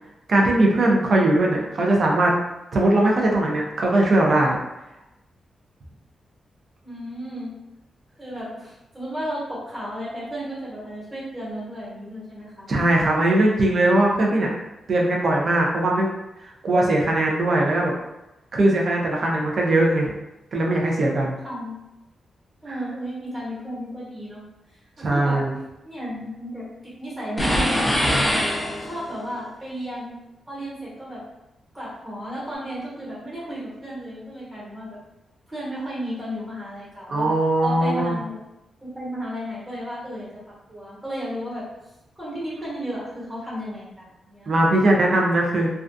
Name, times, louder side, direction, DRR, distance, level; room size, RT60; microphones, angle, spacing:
voice 1, 0.3-2.3 2.7-4.6 12.7-14.5 14.9-16.1 16.6-17.9 18.5-20.1 20.5-21.3 22.7-22.8 25.0-25.6 37.1-38.2 44.5-45.7, right 1 dB, 50° right, -1 dB, 0.5 m, -20 dB
voice 2, 6.8-7.5 8.2-12.7 21.4-21.8 22.6-24.4 25.0-25.4 25.8-30.1 30.5-31.2 31.7-35.0 35.5-37.4 37.6-38.3 38.8-40.3 40.7-41.6 42.1-44.7, equal, 20° right, -8 dB, 1.1 m, -33 dB
sound 1, 27.4-29.2, equal, 15° left, 0.5 m, -22 dB
2.3 x 2.3 x 2.5 m, 0.95 s
wide cardioid pair, 125°, 0 cm